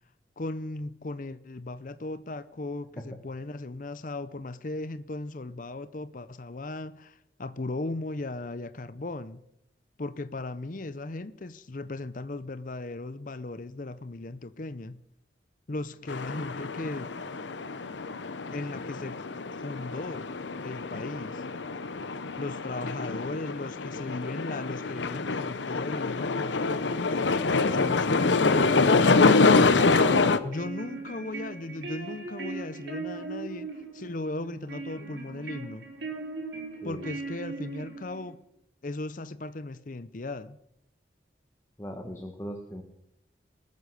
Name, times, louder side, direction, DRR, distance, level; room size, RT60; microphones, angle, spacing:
voice 1, 0.4-9.4 10.0-15.0 15.7-17.1 18.4-19.2 19.6-20.3 20.6-21.4 22.4-29.7 30.4-35.9 36.8-38.4 38.8-40.6, left 2 dB, 45° left, 0.7 m, -37 dB
sound 1, 16.1-30.4, left 3 dB, 80° left, 0.9 m, -26 dB
sound 2, 30.3-38.3, right 3 dB, 80° right, 4.5 m, -39 dB
voice 2, 41.8-42.8, equal, 15° left, 1.3 m, -38 dB
20.5 x 9.5 x 6.6 m
head